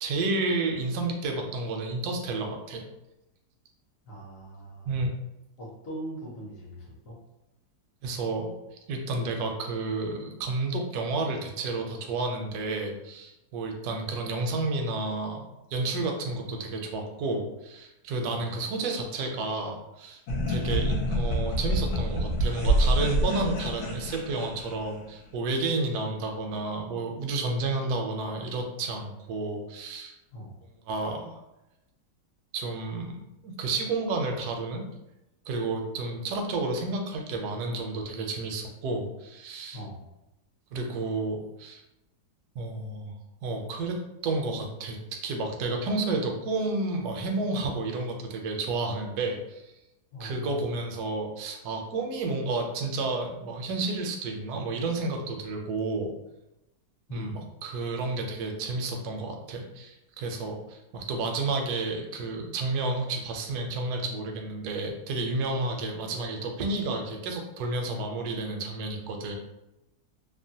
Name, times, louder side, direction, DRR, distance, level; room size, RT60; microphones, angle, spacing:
voice 1, 0.0-2.8 4.9-5.1 8.0-8.5 8.9-15.4 15.7-20.2 20.5-30.1 30.9-31.4 32.5-34.9 35.5-39.8 40.7-41.8 42.5-43.1 43.4-49.7 50.2-56.1 57.1-69.4, right 3 dB, 70° right, 3 dB, 1.0 m, -31 dB
voice 2, 4.1-4.9 5.6-7.2 18.3-18.4 30.3-30.5 39.7-40.0 50.1-50.6 57.1-57.4, right 1 dB, 60° left, -5 dB, 1.0 m, -40 dB
sound 1, 20.3-25.0, right 1 dB, 75° left, 1.2 m, -27 dB
2.9 x 2.1 x 2.6 m, 0.92 s
omnidirectional pair, 1.9 m